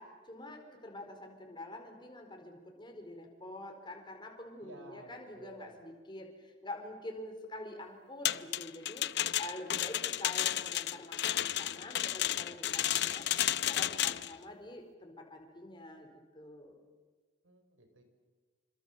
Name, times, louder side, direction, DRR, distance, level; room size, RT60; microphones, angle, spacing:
voice 1, 0.0-13.2 13.6-16.8, left 1 dB, 25° left, 3 dB, 4.6 m, -46 dB
voice 2, 4.6-5.7 17.4-18.0, right 2 dB, 80° right, 6 dB, 5.4 m, -54 dB
sound 1, 8.3-14.3, left 12 dB, 55° left, 0.8 m, -32 dB
27.5 x 26.0 x 7.5 m, 1.4 s
head